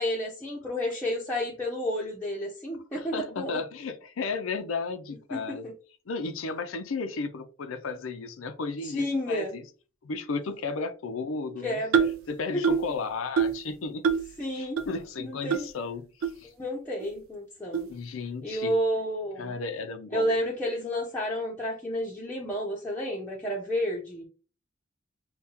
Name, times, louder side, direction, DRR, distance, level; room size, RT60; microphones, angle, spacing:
voice 1, 0.0-3.6 5.3-5.4 5.6-5.7 8.9-9.6 11.6-12.0 14.4-14.8 15.2-15.7 16.6-17.9 18.4-19.5 20.1-24.2, equal, 10° left, -4 dB, 0.7 m, -31 dB
voice 2, 2.9-5.7 6.1-9.7 10.0-11.8 12.3-14.0 14.5-16.5 17.9-18.7 19.4-20.4, left 4 dB, 80° left, 8 dB, 0.5 m, -34 dB
sound 1, 11.9-12.2 12.6-12.9 13.4-13.6 14.0-14.3 14.8-14.9 15.5-15.6 16.2-16.3 17.0-17.1 17.7-17.9, right 7 dB, 80° right, 0.4 m, -25 dB
5.6 x 2.2 x 2.8 m, 0.36 s
head